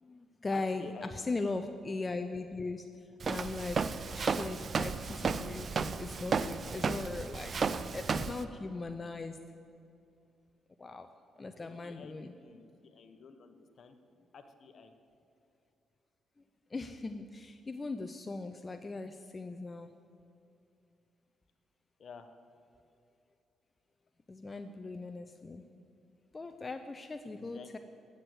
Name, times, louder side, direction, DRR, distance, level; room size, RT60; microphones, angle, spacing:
voice 1, 0.0-7.5 7.9-9.4 10.8-11.1 11.4-12.3 16.7-19.9 24.3-25.6 26.3-27.8, left 3 dB, 25° left, 7 dB, 0.6 m, -39 dB
voice 2, 0.5-1.1 11.6-14.0 14.3-14.9 22.0-22.3 27.4-27.8, left 5 dB, 55° left, 8 dB, 1.1 m, -51 dB
Walk footsteps, 3.2-8.4, right 5 dB, 45° right, 0.5 m, -33 dB
12.0 x 8.0 x 7.9 m, 2.6 s
cardioid pair, 90°, 0 cm